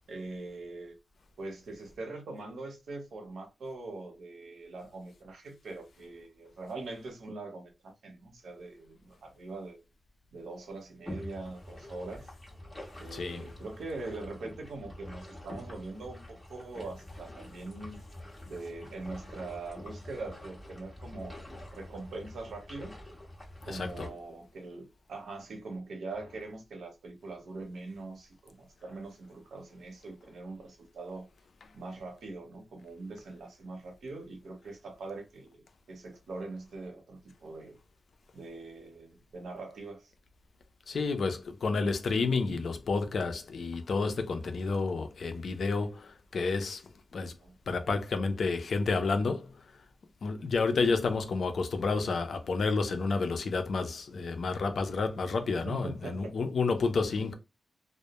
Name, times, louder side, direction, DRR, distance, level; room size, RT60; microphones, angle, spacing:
voice 1, 0.1-0.9 1.4-9.8 10.3-12.2 13.0-18.0 18.5-21.5 21.7-23.0 23.7-31.3 31.7-37.8 38.3-40.1 47.4-47.5 50.7-50.9 55.4-56.3, right 3 dB, 90° right, 0.7 m, -42 dB
sound 1, 11.0-24.1, left 1 dB, 10° left, 1.0 m, -46 dB
voice 2, 13.1-13.4 23.7-24.1 40.9-46.8 47.1-47.3 47.7-49.8 50.2-57.4, left 4 dB, 70° left, 0.4 m, -30 dB
2.2 x 2.0 x 2.9 m
wide cardioid pair, 115°, 0 cm